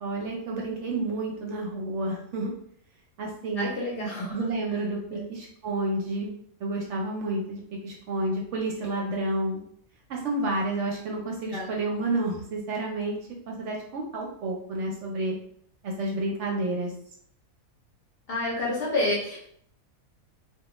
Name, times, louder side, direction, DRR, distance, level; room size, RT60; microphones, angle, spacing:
voice 1, 0.0-2.5 3.2-3.7 4.3-6.3 6.6-9.6 10.1-13.2 13.5-15.3 15.8-16.9, right 2 dB, 65° right, -1 dB, 0.8 m, -30 dB
voice 2, 3.6-4.8 5.1-5.3 11.5-11.8 18.3-19.5, left 2 dB, 55° left, -4 dB, 0.7 m, -30 dB
2.2 x 2.2 x 2.9 m, 0.65 s
omnidirectional pair, 1.4 m